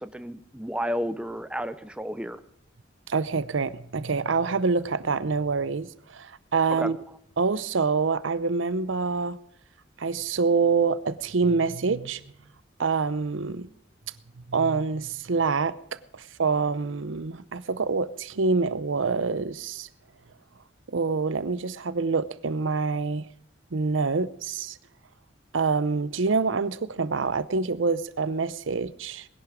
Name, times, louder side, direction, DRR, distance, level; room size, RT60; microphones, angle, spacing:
voice 1, 0.0-2.4 6.7-6.9, equal, 5° right, 0.6 m, -32 dB
voice 2, 3.1-7.0 7.4-9.4 10.0-12.2 12.8-13.7 14.5-15.8 16.1-19.9 20.9-23.3 23.7-24.8 25.5-29.3, right 4 dB, 80° right, 0.7 m, -26 dB
20.0 x 11.0 x 5.0 m
head